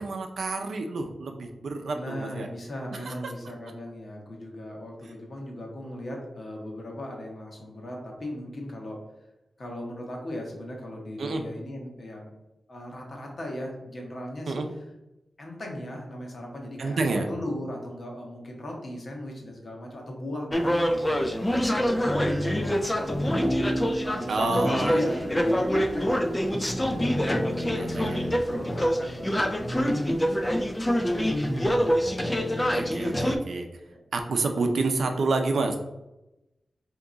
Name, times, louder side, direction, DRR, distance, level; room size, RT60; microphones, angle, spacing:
voice 1, 0.0-2.5 2.9-3.3 11.2-11.4 14.5-14.7 16.8-17.3 24.3-25.2 27.6-28.3 32.7-33.7 34.1-35.8, right 3 dB, 80° right, 4 dB, 0.5 m, -29 dB
voice 2, 1.9-9.0 9.6-12.3 12.7-14.6 15.4-17.0 17.3-23.7 24.0-28.2 28.5-31.7 33.9-34.0, left 1 dB, 50° left, 0 dB, 1.0 m, -38 dB
sound 1, 20.5-33.4, equal, 15° left, 0.3 m, -25 dB
3.5 x 2.9 x 3.8 m, 0.95 s
wide cardioid pair, 165°, 0 cm